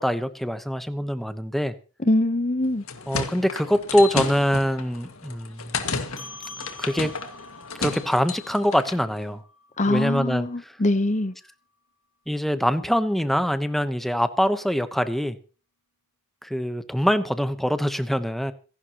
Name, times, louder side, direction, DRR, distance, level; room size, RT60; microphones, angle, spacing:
voice 1, 0.0-1.7 3.1-5.8 6.8-7.1 7.8-9.4 9.9-10.7 12.3-15.4 16.4-18.5, equal, ahead, 1.0 m, -24 dB
voice 2, 2.0-2.8 9.8-11.3, left 1 dB, 35° left, 1.0 m, -23 dB
sound 1, 2.6-9.0, left 4 dB, 85° left, 2.0 m, -32 dB
sound 2, 6.2-11.0, left 2 dB, 60° left, 3.2 m, -46 dB
26.5 x 11.5 x 3.0 m
head